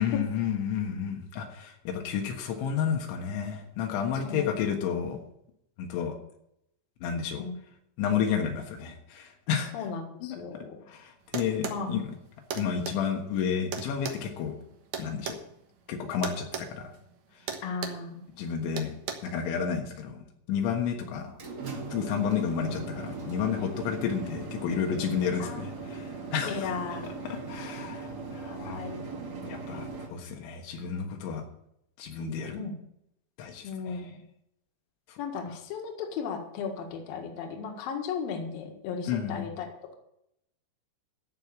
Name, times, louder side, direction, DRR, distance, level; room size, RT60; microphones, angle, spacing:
voice 1, 0.0-5.2 5.8-6.2 7.0-7.4 8.0-9.7 10.9-12.1 12.6-14.5 15.0-15.4 15.9-16.9 18.4-19.0 19.2-20.2 20.5-21.3 21.9-26.6 27.5-28.1 28.3-28.8 29.4-31.4 32.0-32.6 33.4-34.0 39.1-39.5, left 7 dB, 80° left, 3 dB, 3.8 m, -31 dB
voice 2, 4.1-4.6 7.4-7.5 9.7-10.8 11.7-12.0 17.6-18.2 25.4-25.6 26.4-27.2 28.4-29.2 32.5-32.7 33.6-34.2 35.2-39.9, left 5 dB, 60° left, 3 dB, 3.1 m, -36 dB
sound 1, 11.3-11.8 12.5-13.0 13.7-15.4 16.2-16.7 16.9-17.1 17.5-18.0 18.8-19.1, right 7 dB, 85° right, 1.6 m, -35 dB
sound 2, 21.2-30.1, right 4 dB, 45° right, 1.2 m, -39 dB
14.0 x 5.6 x 8.4 m, 0.77 s
omnidirectional pair, 5.4 m